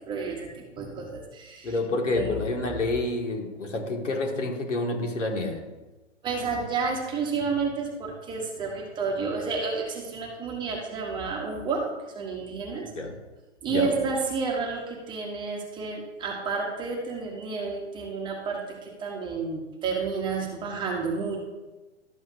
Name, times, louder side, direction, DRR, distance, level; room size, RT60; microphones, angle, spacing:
voice 1, 0.1-1.7 2.1-2.2 6.2-12.9 13.6-21.4, right 4 dB, 15° right, 0 dB, 1.0 m, -30 dB
voice 2, 1.6-5.6 13.0-13.1 13.7-13.9, left 2 dB, 90° left, 2 dB, 2.0 m, -28 dB
12.5 x 7.7 x 2.7 m, 1.1 s
hypercardioid pair, 150°, 36 cm